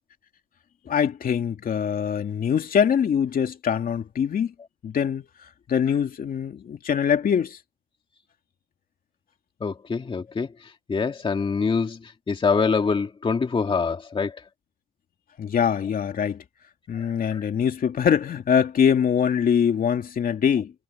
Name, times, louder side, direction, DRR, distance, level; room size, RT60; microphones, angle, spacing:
voice 1, 0.9-4.5 4.8-5.2 5.7-7.6 15.4-16.4 16.9-20.7, left 8 dB, 45° left, 2.7 m, -23 dB
voice 2, 9.6-14.4 17.0-17.4, left 5 dB, 25° left, 2.3 m, -25 dB
cardioid pair, 135°, 21 cm